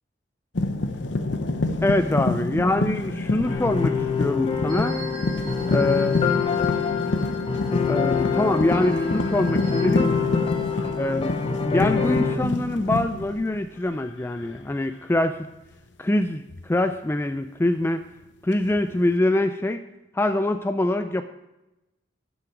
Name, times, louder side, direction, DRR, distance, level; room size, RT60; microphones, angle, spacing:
sound 1, 0.5-14.0 14.3-14.8 16.5-16.7 18.5-19.1, left 2 dB, 80° left, 0.8 m, -28 dB
voice 1, 1.8-5.0 5.7-6.2 7.9-10.1 11.0-11.3 11.6-15.4 16.0-18.0 18.4-19.8 20.1-21.2, left 1 dB, 15° left, 8 dB, 0.4 m, -24 dB
sound 2, 3.5-12.4, left 6 dB, 30° left, 0.8 m, -26 dB
sound 3, 4.7-9.8, right 1 dB, 25° right, 3.1 m, -43 dB
12.0 x 7.1 x 4.6 m, 0.95 s
head